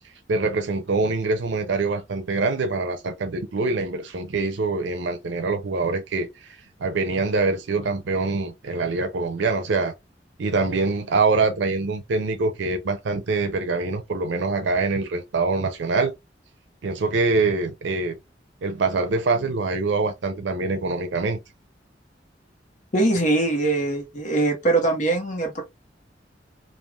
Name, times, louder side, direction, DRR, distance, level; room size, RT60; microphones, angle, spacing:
voice 1, 0.3-9.9 10.4-16.1 16.8-18.2 18.6-21.4, right 3 dB, 80° right, 0.5 m, -24 dB
voice 2, 22.9-25.6, right 2 dB, 45° left, 1.0 m, -22 dB
3.3 x 2.4 x 2.3 m
head